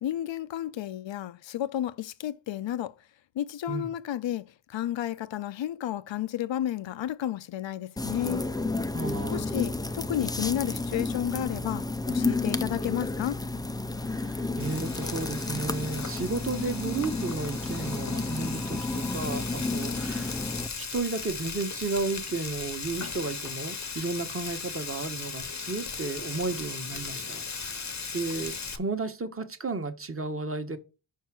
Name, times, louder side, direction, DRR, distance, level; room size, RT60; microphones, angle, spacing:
voice 1, 0.0-2.9 3.4-8.4 9.3-13.4, left 11 dB, 65° left, 0.6 m, -32 dB
sound 1, 8.0-20.7, left 2 dB, 10° left, 0.4 m, -31 dB
voice 2, 8.9-9.5 14.0-20.4 20.8-30.8, right 3 dB, 25° right, 1.1 m, -33 dB
Frying (food), 14.6-28.8, left 5 dB, 35° left, 0.8 m, -37 dB
5.6 x 4.6 x 6.1 m
wide cardioid pair, 80°, 49 cm